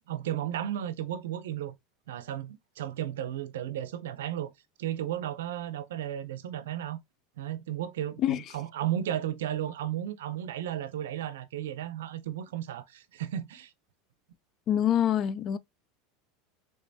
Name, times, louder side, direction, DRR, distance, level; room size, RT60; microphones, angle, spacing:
voice 1, 0.1-1.8 2.1-4.5 4.8-7.0 7.4-13.7, right 11 dB, 85° right, 0.5 m, -34 dB
voice 2, 14.7-15.6, left 10 dB, 45° left, 0.3 m, -25 dB
3.7 x 3.1 x 2.7 m
supercardioid pair, 115°, 0 cm